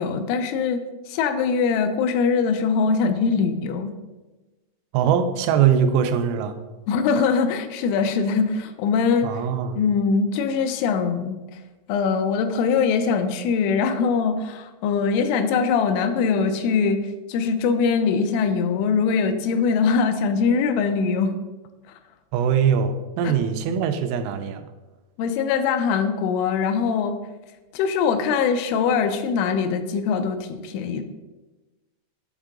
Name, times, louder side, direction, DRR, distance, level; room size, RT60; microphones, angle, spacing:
voice 1, 0.0-3.9 6.9-9.3 9.8-11.4 11.9-17.0 17.3-21.3 25.2-27.2 27.7-31.0, left 5 dB, 85° left, 8 dB, 2.9 m, -22 dB
voice 2, 4.9-6.6 9.2-9.8 22.3-24.7, right 8 dB, 85° right, 8 dB, 3.0 m, -22 dB
8.1 x 3.6 x 3.7 m, 1.1 s
omnidirectional pair, 5.5 m